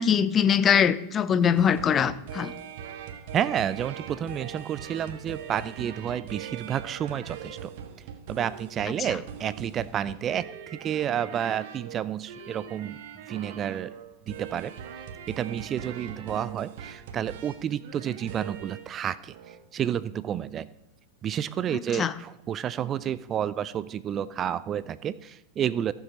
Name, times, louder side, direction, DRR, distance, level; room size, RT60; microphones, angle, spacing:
voice 1, 0.0-2.5 21.7-22.1, left 8 dB, 25° left, 15 dB, 0.6 m, -22 dB
sound 1, 1.4-18.9 19.3-19.6, right 8 dB, 50° right, 1.3 m, -42 dB
voice 2, 3.3-7.7 8.3-13.0 13.3-13.9 14.3-14.7 15.3-19.4 19.7-20.7 21.2-25.9, right 9 dB, 30° right, 17 dB, 0.4 m, -30 dB
14.5 x 7.3 x 5.2 m, 0.94 s
figure-of-eight pair, 90°, 0 cm